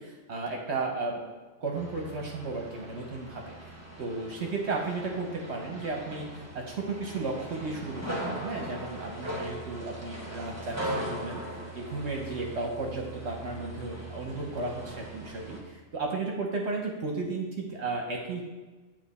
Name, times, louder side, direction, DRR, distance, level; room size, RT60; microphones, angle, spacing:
voice 1, 0.0-1.3 1.6-3.7 4.0-18.4, right 3 dB, 65° right, 1 dB, 1.0 m, -34 dB
sound 1, 1.7-15.6, right 1 dB, 15° right, 1.0 m, -40 dB
8.9 x 3.0 x 4.1 m, 1.3 s
omnidirectional pair, 1.3 m